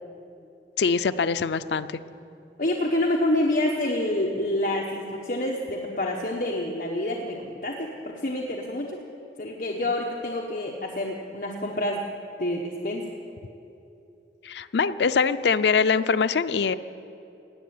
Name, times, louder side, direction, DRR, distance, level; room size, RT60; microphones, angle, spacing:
voice 1, 0.8-2.0 14.4-16.7, left 5 dB, 80° left, 12 dB, 0.5 m, -23 dB
voice 2, 2.6-9.0 9.4-12.1 12.4-13.1, left 1 dB, 50° left, -1 dB, 1.1 m, -27 dB
17.5 x 7.3 x 9.4 m, 2.8 s
head